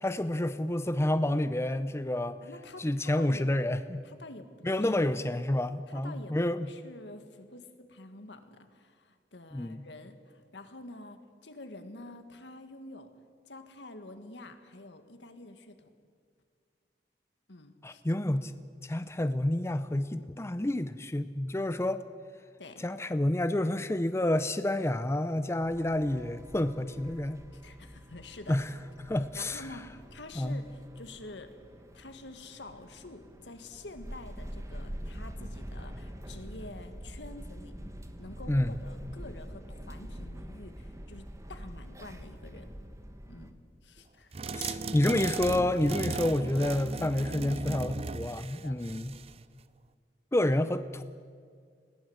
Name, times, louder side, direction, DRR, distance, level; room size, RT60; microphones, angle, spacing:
voice 1, 0.0-2.4 2.8-4.0 4.6-6.7 9.5-9.8 17.8-18.5 18.8-22.0 22.8-27.4 28.5-28.7 29.0-29.6 30.4-30.6 38.5-38.7 44.5-49.1 50.3-51.0, left 1 dB, 15° left, 11 dB, 0.5 m, -29 dB
voice 2, 2.4-3.5 4.0-5.2 5.9-6.4 6.7-13.1 13.5-15.9 17.5-18.0 22.6-22.8 27.5-28.6 29.4-31.5 31.9-37.7 38.2-42.7 43.3-43.6 43.8-44.3 48.5-48.8, left 2 dB, 80° left, 8 dB, 1.8 m, -48 dB
sound 1, 25.6-43.5, equal, 15° right, 1.3 m, -45 dB
sound 2, 44.3-49.4, right 3 dB, 35° right, 0.6 m, -37 dB
20.5 x 16.0 x 8.0 m, 2.1 s
head